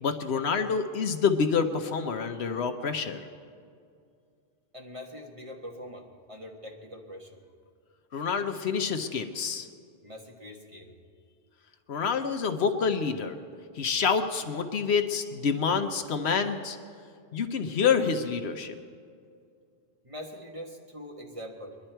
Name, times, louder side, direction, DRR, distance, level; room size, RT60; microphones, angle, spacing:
voice 1, 0.0-3.3 8.1-9.7 11.9-13.4 13.7-16.8 17.3-18.7, left 6 dB, 70° left, 7 dB, 1.0 m, -27 dB
voice 2, 4.7-7.4 10.0-10.9 20.0-21.8, equal, 30° right, 0 dB, 1.4 m, -43 dB
21.5 x 11.5 x 4.5 m, 2.3 s
omnidirectional pair, 1.2 m